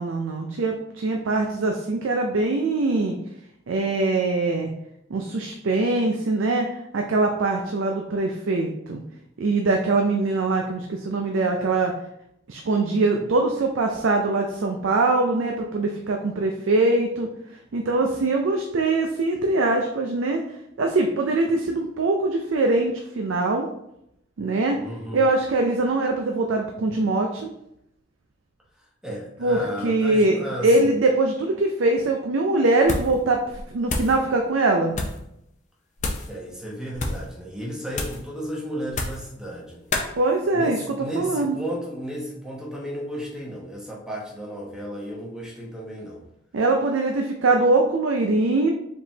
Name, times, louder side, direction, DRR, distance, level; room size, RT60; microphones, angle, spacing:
voice 1, 0.0-3.2 3.7-4.7 5.1-6.7 6.9-9.0 9.4-11.9 12.5-17.3 17.7-20.4 20.8-23.7 24.4-24.8 25.1-27.5 29.4-34.9 40.1-40.8 41.2-41.6 46.5-48.7, right 2 dB, 70° right, 2 dB, 0.4 m, -22 dB
voice 2, 24.7-25.2 29.0-30.9 36.3-39.8 40.5-46.2, equal, 5° right, -4 dB, 0.8 m, -34 dB
sound 1, 32.8-33.2 33.5-34.2 34.9-35.2 36.0-36.3 36.9-37.3 37.9-38.3 38.9-39.3 39.9-40.1, left 2 dB, 35° left, 0.5 m, -29 dB
4.8 x 3.6 x 2.8 m, 0.81 s
head